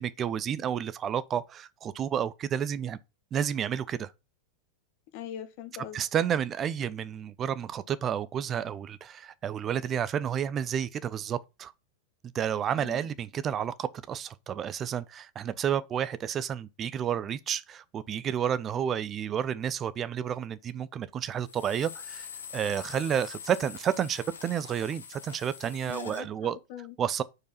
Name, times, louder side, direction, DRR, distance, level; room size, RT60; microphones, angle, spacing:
voice 1, 0.0-3.0 3.3-4.1 5.9-11.7 12.3-22.3 22.5-26.6 27.0-27.2, right 9 dB, 25° right, 0.5 m, -31 dB
voice 2, 5.1-6.0 12.7-13.0 25.9-26.9, left 11 dB, 45° left, 1.3 m, -42 dB
sound 1, 21.4-26.2, left 7 dB, 70° left, 1.2 m, -44 dB
4.8 x 4.6 x 5.8 m
figure-of-eight pair, 90°, 0 cm